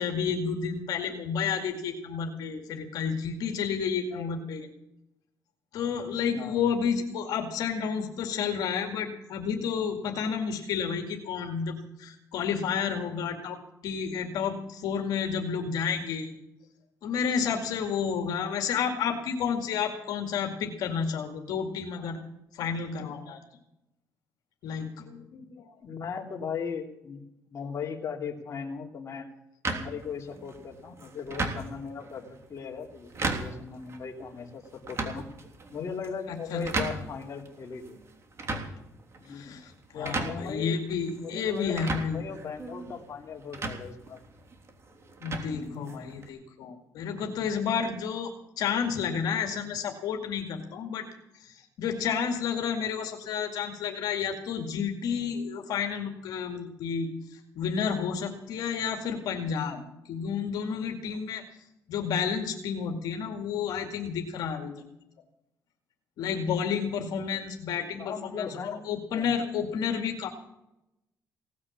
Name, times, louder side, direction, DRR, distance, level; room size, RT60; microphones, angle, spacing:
voice 1, 0.0-4.7 5.7-13.6 13.8-16.3 17.0-22.2 22.5-23.4 24.6-25.7 36.3-36.6 36.9-37.0 39.3-42.2 45.2-51.1 51.3-61.4 61.9-64.7 66.2-70.3, left 6 dB, 80° left, 3 dB, 2.3 m, -31 dB
voice 2, 6.3-6.7 25.8-27.2 27.5-29.3 29.7-35.3 35.7-38.0 39.2-39.5 39.9-44.2 45.5-45.7 68.0-68.8 69.1-69.3, left 6 dB, 50° left, 0 dB, 3.0 m, -38 dB
sound 1, 29.6-46.3, right 3 dB, 45° right, 3.3 m, -37 dB
18.0 x 9.7 x 7.4 m, 0.88 s
cardioid pair, 90°, 7 cm